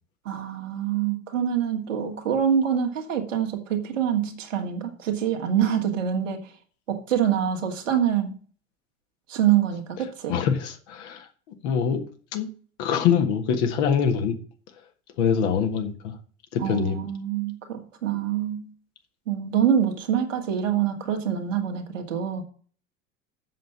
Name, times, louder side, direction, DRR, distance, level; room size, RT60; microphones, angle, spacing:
voice 1, 0.2-6.4 6.9-8.3 9.3-10.4 16.6-18.7 19.3-22.4, right 9 dB, 75° right, 1.8 m, -25 dB
voice 2, 10.3-12.0 12.3-12.5 12.8-14.4 15.2-16.2 16.5-17.0, left 7 dB, 60° left, 1.7 m, -24 dB
7.6 x 6.6 x 7.0 m
figure-of-eight pair, 65°, 39 cm